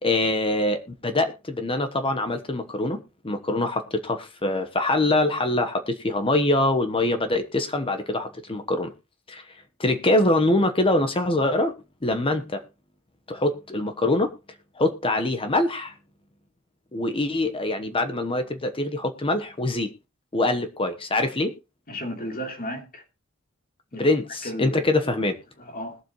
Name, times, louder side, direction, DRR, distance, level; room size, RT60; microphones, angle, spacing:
voice 1, 0.0-3.0 3.2-8.9 9.3-9.4 9.8-11.7 12.0-12.6 13.3-14.3 14.8-15.9 16.9-19.9 20.3-21.5 23.9-25.4, left 2 dB, 25° left, 1.1 m, -24 dB
voice 2, 21.9-23.0 23.9-24.1 24.4-24.8 25.6-26.0, equal, 45° left, 3.0 m, -34 dB
20.5 x 7.6 x 3.0 m
head